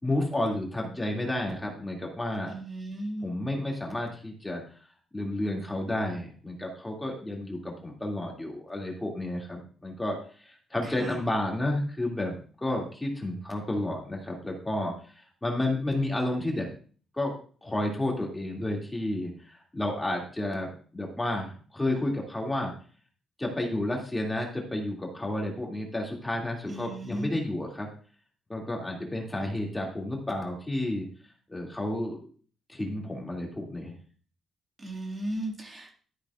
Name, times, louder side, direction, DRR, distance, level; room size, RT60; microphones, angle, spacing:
voice 1, 0.0-2.5 3.2-4.6 5.1-12.4 12.6-14.9 15.4-16.7 17.1-17.3 17.6-22.7 23.4-27.9 28.5-31.0 31.5-32.2 32.7-33.9, left 1 dB, 10° left, -1 dB, 2.4 m, -31 dB
voice 2, 2.5-3.3 10.8-11.2 26.7-27.3 34.8-35.9, right 1 dB, 25° right, 0 dB, 2.2 m, -36 dB
12.5 x 10.0 x 2.4 m, 0.42 s
cardioid pair, 145°, 0 cm